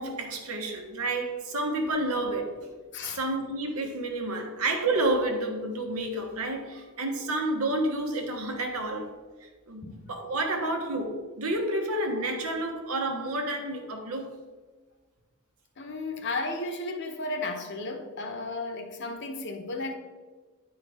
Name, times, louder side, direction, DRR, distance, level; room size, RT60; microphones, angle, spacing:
voice 1, 0.0-2.6 3.0-9.1 9.4-14.4, right 2 dB, 85° right, 1.2 m, -30 dB
voice 2, 15.8-19.9, left 2 dB, 55° left, 0.9 m, -34 dB
9.8 x 4.6 x 3.5 m
head